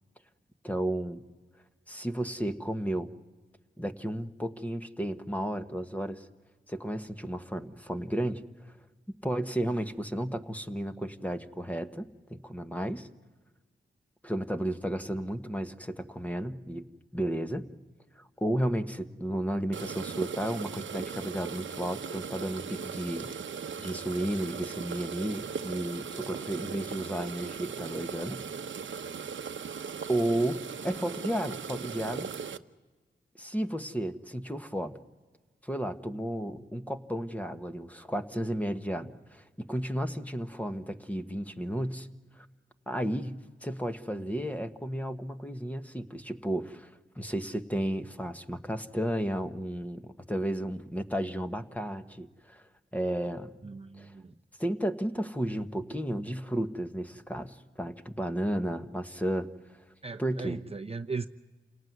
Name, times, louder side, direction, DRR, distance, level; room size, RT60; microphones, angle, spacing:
voice 1, 0.6-1.2 1.9-3.1 3.8-6.3 6.7-8.4 8.7-8.8 9.1-13.1 14.2-16.9 17.1-17.7 18.2-23.3 23.8-28.4 30.1-32.6 33.4-35.0 35.6-42.1 42.3-42.5 42.9-53.5 54.0-54.1 54.6-59.8 60.2-60.6, right 1 dB, 5° left, 7 dB, 1.4 m, -33 dB
sound 1, 19.7-32.6, right 6 dB, 70° right, 0.9 m, -38 dB
voice 2, 53.6-54.3 60.0-61.3, right 4 dB, 30° right, 7 dB, 0.8 m, -37 dB
28.5 x 18.5 x 9.5 m, 1.4 s
cardioid pair, 75°, 20 cm